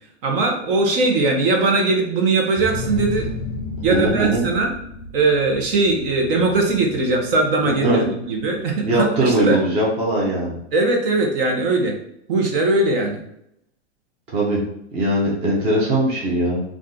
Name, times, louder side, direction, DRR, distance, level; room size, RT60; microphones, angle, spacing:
voice 1, 0.2-3.3 3.8-4.7 5.1-9.6 10.7-12.0 12.3-13.2, right 3 dB, 55° right, 1 dB, 0.9 m, -20 dB
sound 1, 2.6-8.1, left 3 dB, 50° left, 0.5 m, -33 dB
voice 2, 3.9-4.4 7.8-8.1 8.8-10.6 14.3-14.6 14.9-16.6, right 1 dB, 20° right, -3 dB, 0.6 m, -20 dB
2.5 x 2.5 x 3.6 m, 0.74 s
supercardioid pair, 150°, 34 cm